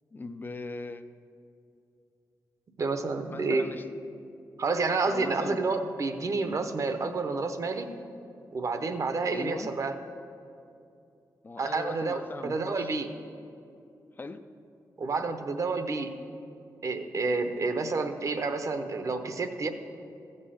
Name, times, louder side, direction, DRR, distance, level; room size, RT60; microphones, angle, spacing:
voice 1, 0.1-1.1 3.3-3.8 5.1-5.6 9.3-9.7 11.4-12.9 14.2-14.4, left 3 dB, 30° left, 11 dB, 0.5 m, -39 dB
voice 2, 2.8-3.7 4.6-7.9 8.5-9.9 11.6-13.1 15.0-16.1 16.8-19.7, right 3 dB, 50° right, 8 dB, 0.8 m, -29 dB
15.0 x 5.5 x 7.0 m, 2.6 s
wide cardioid pair, 120°, 7 cm